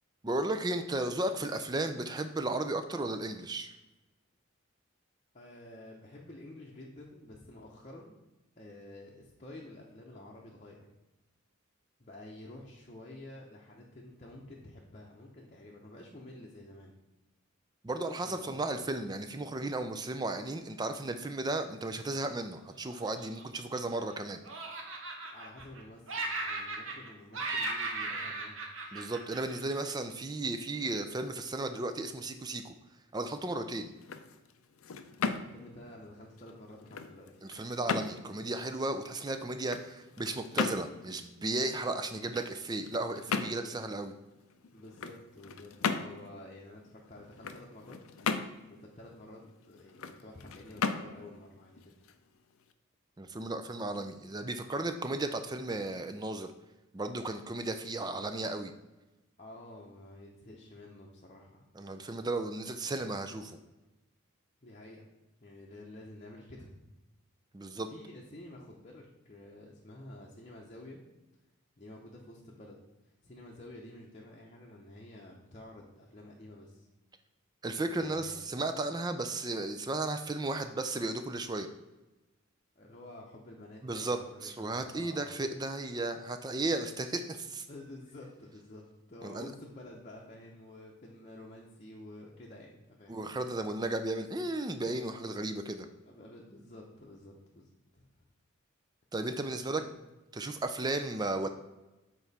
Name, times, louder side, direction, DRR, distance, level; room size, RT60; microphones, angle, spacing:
voice 1, 0.2-3.7 17.8-24.4 28.9-32.7 33.1-33.9 37.4-44.1 53.2-56.5 56.9-58.7 61.8-63.6 67.5-67.9 77.6-81.7 83.8-87.7 89.2-89.5 93.1-95.9 99.1-99.8 100.3-101.5, right 2 dB, 20° right, 8 dB, 0.4 m, -34 dB
voice 2, 5.3-8.2 8.6-10.8 12.0-16.9 18.2-18.8 25.2-28.9 35.4-37.4 43.5-43.7 44.7-48.0 48.7-49.4 49.7-51.9 59.4-61.6 64.6-65.1 65.4-66.7 67.9-71.0 71.8-72.8 73.2-76.9 78.0-78.4 82.8-85.4 87.7-88.8 89.1-93.2 96.0-98.3 99.6-99.9, left 1 dB, 35° left, -3 dB, 0.8 m, -50 dB
Laughter, 22.9-24.1 24.4-25.8 26.1-27.1 27.3-29.9, right 3 dB, 65° right, 1.1 m, -37 dB
sound 1, 33.9-52.7, left 5 dB, 75° left, 0.5 m, -38 dB
7.0 x 4.4 x 4.1 m, 1.0 s
head